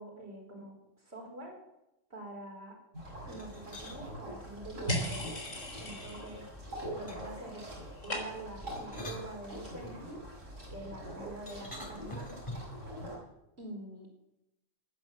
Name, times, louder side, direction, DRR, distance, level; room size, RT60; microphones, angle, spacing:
voice 1, 0.0-1.6 2.1-2.8 3.3-5.4 5.8-6.5 6.9-7.7 8.0-10.1 10.7-12.4 13.6-14.1, right 1 dB, 55° right, 1 dB, 4.7 m, -46 dB
sound 1, 2.9-13.2, equal, 85° right, 6.6 m, -42 dB
sound 2, 3.3-4.0 5.4-6.4 7.1-7.5 8.6-9.9 11.5-12.8, left 1 dB, 25° left, 3.4 m, -46 dB
sound 3, 4.9-6.5 6.8-7.3 7.6-8.6, left 2 dB, 75° left, 4.4 m, -40 dB
19.5 x 10.5 x 7.1 m, 0.89 s
omnidirectional pair, 1.3 m